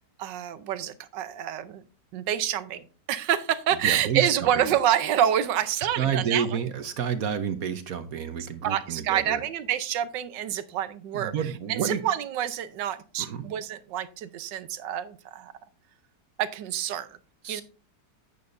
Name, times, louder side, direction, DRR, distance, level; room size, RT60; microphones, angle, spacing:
voice 1, 0.2-1.8 2.1-6.6 8.6-15.5 16.4-17.2 17.5-17.6, right 10 dB, 90° right, 14 dB, 1.4 m, -27 dB
voice 2, 3.8-4.7 6.0-9.4 11.1-12.0 13.2-13.4 17.4-17.6, right 7 dB, 60° right, 10 dB, 1.2 m, -30 dB
10.5 x 8.7 x 2.6 m, 0.35 s
omnidirectional pair, 1.9 m